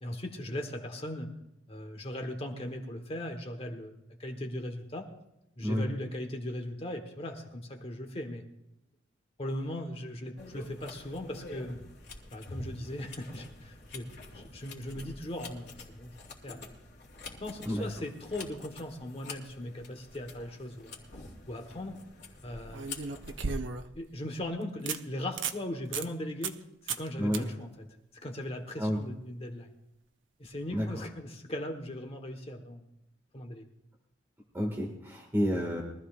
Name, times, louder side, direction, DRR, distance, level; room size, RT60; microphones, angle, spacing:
voice 1, 0.0-1.3 1.7-3.9 4.2-5.1 5.6-8.4 9.4-11.8 12.3-16.1 16.4-16.8 17.4-21.0 21.5-22.0 22.4-22.9 23.9-26.5 26.8-27.7 28.2-29.7 30.4-32.8 33.3-33.6, left 1 dB, 30° left, 4 dB, 1.3 m, -38 dB
sound 1, 10.4-23.5, left 3 dB, 65° left, 2.7 m, -47 dB
sound 2, 21.0-21.3 22.7-24.0 24.4-24.5 24.9-25.0 25.3-25.6 25.9-26.1 26.4-26.6 26.9-27.1 27.3-27.4 30.5-30.6, right 5 dB, 80° right, 0.8 m, -35 dB
voice 2, 34.5-35.8, equal, 15° right, -1 dB, 1.9 m, -30 dB
23.0 x 14.0 x 2.5 m, 0.87 s
head